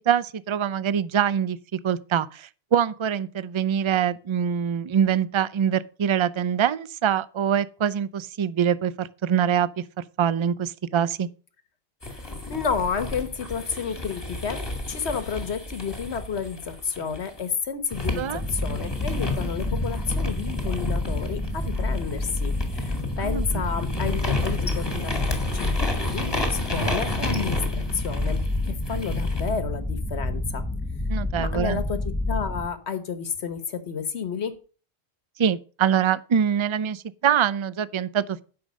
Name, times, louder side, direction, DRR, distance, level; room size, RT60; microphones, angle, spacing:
voice 1, 0.0-11.3 18.2-18.4 23.2-23.6 31.1-31.8 35.4-38.4, right 8 dB, 45° right, 0.3 m, -24 dB
sound 1, 12.0-17.4 17.9-29.5, left 2 dB, 20° left, 2.0 m, -32 dB
voice 2, 12.5-14.6 14.9-28.4 28.7-30.6 31.4-32.0 32.3-34.5, left 6 dB, 75° left, 1.5 m, -31 dB
sound 2, 18.3-32.7, left 1 dB, 5° left, 0.9 m, -29 dB
9.7 x 5.8 x 6.3 m
omnidirectional pair, 1.1 m